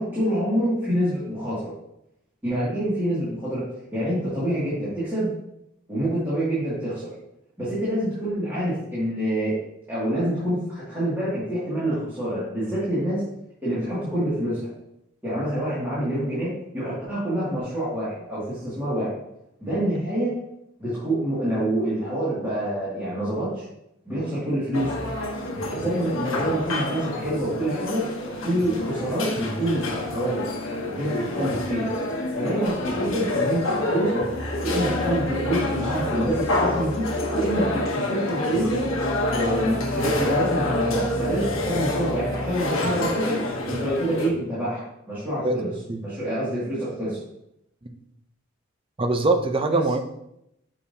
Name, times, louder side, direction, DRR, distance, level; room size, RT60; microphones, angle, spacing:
voice 1, 0.0-1.7 2.4-3.6 3.9-5.3 5.9-7.1 7.6-9.5 9.9-13.2 13.6-14.7 15.2-19.1 19.6-20.3 20.8-23.6 24.1-25.0 25.7-28.0 28.4-29.8 30.1-30.5 30.9-31.9 32.3-34.2 34.6-37.0 37.3-38.8 39.3-43.4 43.7-45.7 46.0-47.2 49.7-49.8, right 1 dB, 10° right, -12 dB, 2.2 m, -26 dB
sound 1, 24.7-44.3, left 1 dB, 80° left, 1.0 m, -27 dB
voice 2, 49.0-50.0, right 2 dB, 25° right, 6 dB, 0.6 m, -23 dB
6.5 x 5.4 x 2.8 m, 0.81 s
head